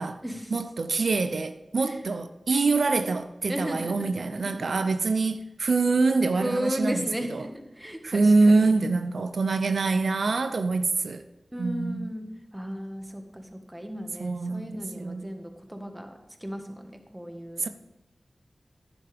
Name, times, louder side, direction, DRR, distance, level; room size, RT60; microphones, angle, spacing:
voice 1, 0.5-7.5 8.0-11.2 11.6-12.1 14.2-15.3 17.6-17.7, right 3 dB, 90° right, 0.4 m, -25 dB
voice 2, 3.5-4.9 6.4-8.7 11.5-12.2 12.5-16.1 16.4-17.6, equal, 10° right, 1.5 m, -35 dB
11.0 x 10.0 x 3.4 m
wide cardioid pair, 55°, 0 cm